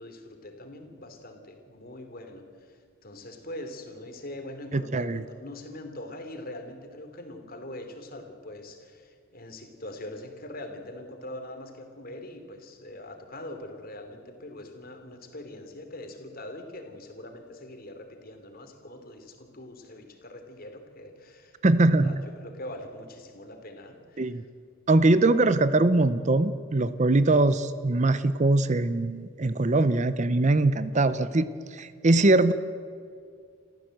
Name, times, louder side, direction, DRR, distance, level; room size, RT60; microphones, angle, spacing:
voice 1, 0.0-24.4 30.9-31.3, left 1 dB, 45° left, 5 dB, 2.9 m, -43 dB
voice 2, 4.7-5.2 21.6-22.1 24.2-24.4 24.9-31.5 31.7-32.5, right 2 dB, 35° right, 14 dB, 0.6 m, -22 dB
28.0 x 14.5 x 7.8 m, 2.3 s
head